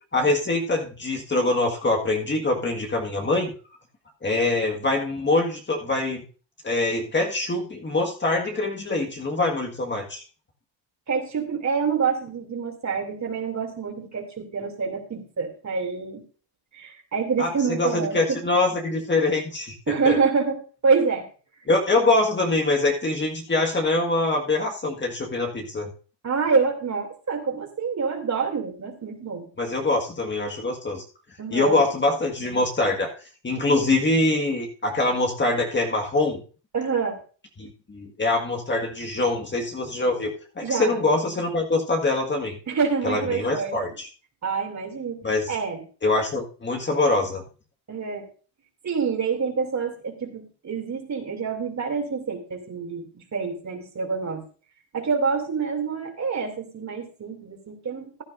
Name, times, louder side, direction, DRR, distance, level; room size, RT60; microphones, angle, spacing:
voice 1, 0.1-3.5 4.2-6.2 6.6-10.2 17.4-19.8 20.1-20.2 21.7-25.9 29.6-31.0 31.5-33.1 33.4-36.4 37.6-42.6 43.0-44.1 45.2-45.5 46.0-47.4, left 2 dB, 25° left, 1 dB, 1.7 m, -24 dB
voice 2, 11.1-16.2 16.7-18.4 19.9-20.6 20.8-21.2 26.2-29.5 31.4-31.8 36.7-37.2 40.6-41.0 42.7-43.8 44.4-45.2 45.5-45.8 47.9-48.2 48.8-54.4 54.9-58.2, right 5 dB, 35° right, 4 dB, 2.8 m, -26 dB
15.0 x 10.5 x 2.6 m, 0.37 s
supercardioid pair, 90°, 47 cm